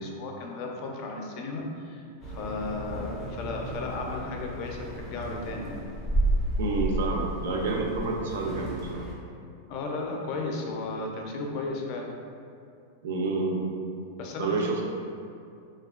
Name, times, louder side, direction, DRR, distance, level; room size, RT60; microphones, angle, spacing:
voice 1, 0.0-5.9 9.7-12.1 14.2-14.6, left 3 dB, 40° left, 0 dB, 0.3 m, -34 dB
sound 1, 2.2-9.1, right 1 dB, 15° right, 0.5 m, -32 dB
voice 2, 6.6-9.0 13.0-13.6 14.4-14.8, right 3 dB, 75° right, 0 dB, 0.4 m, -28 dB
2.8 x 2.2 x 2.3 m, 2.4 s
supercardioid pair, 155°, 0 cm